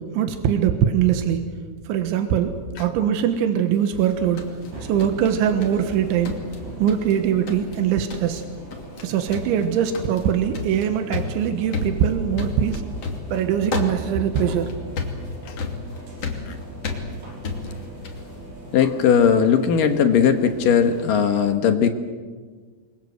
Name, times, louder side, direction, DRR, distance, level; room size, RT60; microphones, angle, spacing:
voice 1, 0.1-1.4 1.9-4.5 4.8-6.4 6.8-8.4 9.0-12.8 13.3-14.7, right 9 dB, 90° right, 7 dB, 3.7 m, -22 dB
sound 1, 4.0-5.9 6.2-7.2 7.5-7.8 8.1-8.4 8.7-9.0 9.3-18.3, left 4 dB, 40° left, 3.2 m, -32 dB
sound 2, 4.0-21.1, right 2 dB, 60° right, 7.6 m, -40 dB
voice 2, 18.7-21.9, left 7 dB, 65° left, 7 dB, 2.3 m, -18 dB
28.0 x 23.0 x 8.1 m, 1.5 s
omnidirectional pair, 5.3 m